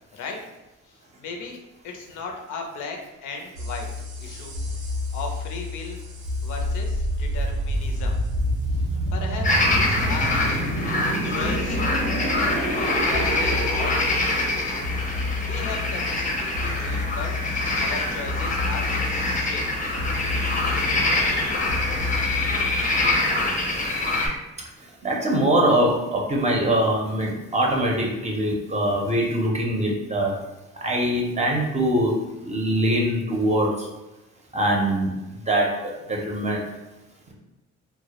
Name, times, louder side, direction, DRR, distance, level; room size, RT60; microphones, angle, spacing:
voice 1, 1.2-3.9 4.2-4.6 5.1-6.0 6.4-8.2 8.8-10.3 11.1-11.8 12.9-14.0 14.5-14.7 15.4-17.3 17.8-19.6, left 4 dB, 80° left, 2 dB, 0.5 m, -36 dB
sound 1, 3.5-23.2, left 1 dB, 85° right, 0.6 m, -29 dB
sound 2, 9.4-24.3, left 2 dB, 25° left, 0.5 m, -25 dB
voice 2, 25.0-30.3 30.8-32.1 32.4-33.9 34.5-36.6, right 1 dB, 25° right, -1 dB, 0.5 m, -23 dB
2.1 x 2.0 x 2.8 m, 1.0 s
cardioid pair, 90°, 30 cm